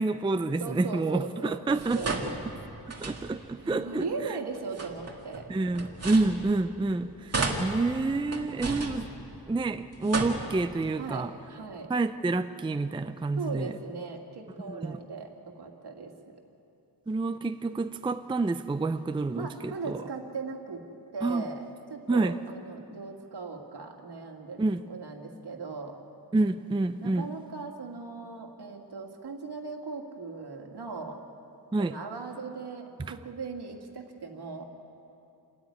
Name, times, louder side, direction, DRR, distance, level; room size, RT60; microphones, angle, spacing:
voice 1, 0.0-2.1 2.9-4.4 5.5-9.1 9.5-11.3 11.9-13.7 14.6-15.0 17.1-20.0 21.2-21.5 22.1-22.4 24.6-24.8 26.3-27.3 31.7-32.0, right 3 dB, 15° right, 10 dB, 0.4 m, -28 dB
voice 2, 0.6-2.4 3.6-5.5 8.4-8.6 11.0-11.9 13.4-16.4 19.4-20.8 21.1-21.6 21.9-26.0 27.0-31.2 31.8-34.6, right 4 dB, 70° right, 3 dB, 2.3 m, -39 dB
sound 1, 1.7-3.6 4.5-6.9 7.3-9.6 9.9-10.9, right 3 dB, 35° right, 2.2 m, -34 dB
28.5 x 13.5 x 9.7 m, 2.8 s
wide cardioid pair, 160°, 40 cm